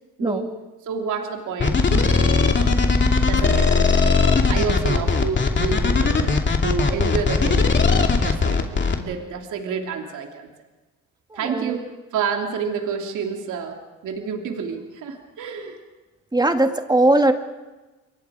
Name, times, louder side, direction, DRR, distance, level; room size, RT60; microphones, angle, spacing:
voice 1, 0.2-0.5 0.8-7.8 8.2-10.5 11.3-15.8, right 6 dB, 80° right, 2 dB, 3.0 m, -29 dB
sound 1, 1.6-9.0, left 4 dB, 40° left, 2.7 m, -18 dB
voice 2, 11.3-11.8 16.3-17.3, right 2 dB, 15° right, 6 dB, 2.1 m, -19 dB
29.0 x 23.5 x 5.0 m, 1.2 s
cardioid pair, 90°, 30 cm